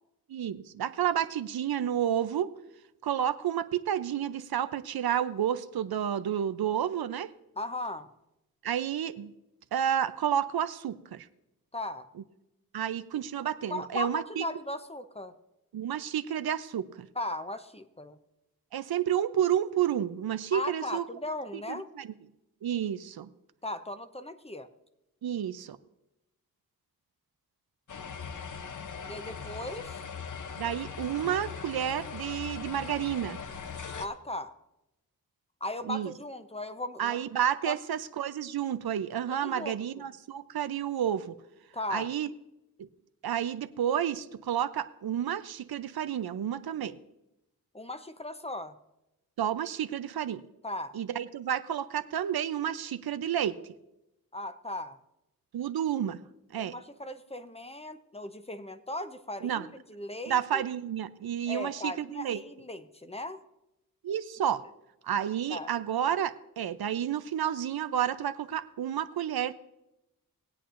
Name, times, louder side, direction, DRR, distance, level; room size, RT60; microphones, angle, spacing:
voice 1, 0.3-2.5 3.0-7.3 8.6-9.3 9.7-11.3 12.7-14.4 15.7-17.1 18.7-21.0 21.5-22.1 22.6-23.3 25.2-25.8 30.6-33.4 35.9-36.1 37.0-41.3 41.9-42.3 42.8-42.9 43.2-47.0 49.4-50.4 50.9-53.6 55.5-56.2 56.5-56.7 59.4-59.7 60.3-62.4 64.0-64.6 65.0-69.5, right 10 dB, 85° right, 12 dB, 0.6 m, -30 dB
voice 2, 7.6-8.1 11.7-12.1 13.7-15.3 17.2-18.2 20.5-21.9 23.6-24.7 29.0-30.0 34.0-34.5 35.6-37.2 37.7-37.8 39.3-39.8 41.7-42.1 47.7-48.8 50.6-51.0 54.3-55.0 56.6-60.6 61.5-63.4 65.5-65.7, left 1 dB, 15° left, 9 dB, 0.7 m, -37 dB
sound 1, 27.9-34.1, left 6 dB, 55° left, 0.7 m, -40 dB
20.0 x 8.6 x 2.5 m, 0.90 s
wide cardioid pair, 85°, 36 cm